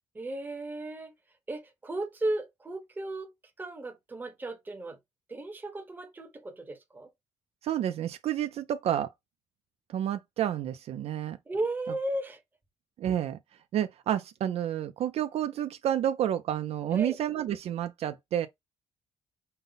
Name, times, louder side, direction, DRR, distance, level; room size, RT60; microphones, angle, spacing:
voice 1, 0.1-1.1 1.5-3.3 3.6-5.0 5.3-7.1 11.5-12.4 16.9-17.2, right 2 dB, 15° right, 0.9 m, -35 dB
voice 2, 7.6-9.1 9.9-11.4 13.0-13.4 13.7-18.5, right 10 dB, 60° right, 0.4 m, -30 dB
5.4 x 2.0 x 3.8 m
cardioid pair, 170°, 12 cm